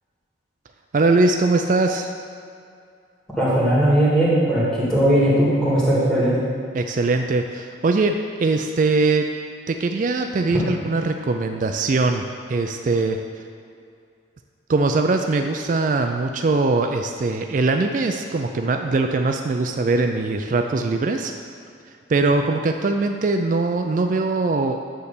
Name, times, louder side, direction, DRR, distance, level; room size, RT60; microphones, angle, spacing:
voice 1, 0.9-2.1 6.7-9.3 9.7-12.2 12.5-13.2 14.7-21.3 22.1-24.8, right 3 dB, 40° right, 5 dB, 0.3 m, -21 dB
voice 2, 3.3-6.4 10.5-10.6, right 1 dB, ahead, -9 dB, 1.9 m, -18 dB
9.3 x 3.3 x 6.6 m, 2.4 s
head